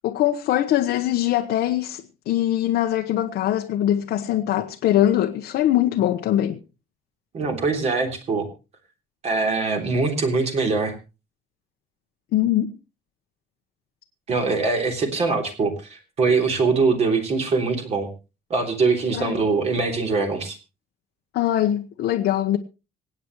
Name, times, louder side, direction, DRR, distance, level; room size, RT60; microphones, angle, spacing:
voice 1, 0.0-6.6 12.3-12.7 19.1-19.4 21.3-22.6, left 12 dB, 85° left, 1.2 m, -22 dB
voice 2, 7.3-8.5 9.2-10.9 14.3-18.1 18.5-20.6, right 4 dB, 40° right, 3.3 m, -23 dB
26.0 x 9.0 x 3.1 m
cardioid pair, 170°, 16 cm